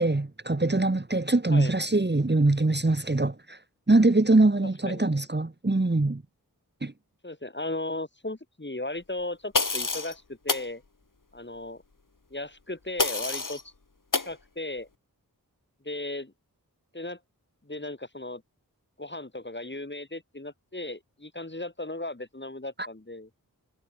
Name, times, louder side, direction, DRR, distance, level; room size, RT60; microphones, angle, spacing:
voice 1, 0.0-3.6 3.9-6.2 6.8-6.9 22.8-22.9, right 2 dB, 30° right, 1.8 m, -23 dB
voice 2, 7.2-10.8 11.3-11.8 12.3-13.6 14.2-14.9 15.8-16.3 16.9-17.2 17.7-18.4 19.0-23.3, left 2 dB, 30° left, 4.1 m, -36 dB
sound 1, 9.5-10.1 10.5-10.7 13.0-13.6 14.1-14.3, left 3 dB, 60° left, 4.2 m, -27 dB
wide cardioid pair, 40°, 37 cm